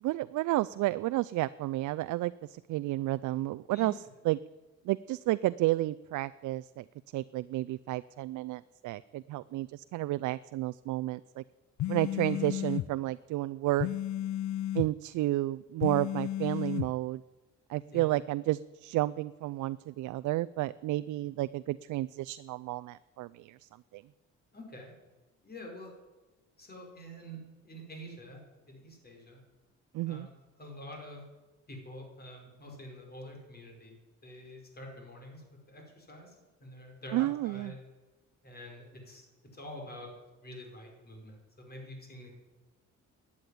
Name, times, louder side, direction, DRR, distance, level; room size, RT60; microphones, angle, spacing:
voice 1, 0.0-3.9 4.2-4.4 4.9-6.9 7.1-11.4 11.9-13.9 14.7-17.2 17.7-24.0 29.9-30.3 37.1-37.7, right 17 dB, 75° right, 15 dB, 0.4 m, -31 dB
sound 1, 11.8-12.9 13.8-14.9 15.8-16.9, left 12 dB, 70° left, 0.6 m, -33 dB
voice 2, 12.1-12.5 17.9-18.0 24.5-24.9 25.4-25.9 26.6-27.4 27.6-28.4 28.7-29.4 30.0-30.3 30.6-31.2 31.7-33.9 34.2-36.4 36.6-37.8 38.4-39.3 39.5-40.1 40.4-42.3, equal, 30° left, 1 dB, 5.1 m, -46 dB
12.0 x 8.6 x 10.0 m, 1.1 s
cardioid pair, 90°, 30 cm